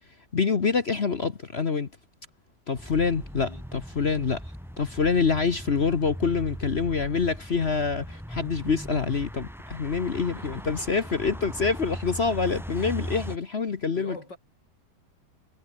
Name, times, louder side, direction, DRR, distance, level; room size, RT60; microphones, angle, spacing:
voice 1, 0.3-1.9 2.7-4.4 4.8-14.2, left 5 dB, 40° left, 1.2 m, -26 dB
sound 1, 2.7-13.4, equal, ahead, 4.3 m, -39 dB
voice 2, 10.2-10.7 13.9-14.4, left 2 dB, 70° left, 8.3 m, -44 dB
omnidirectional pair, 2.0 m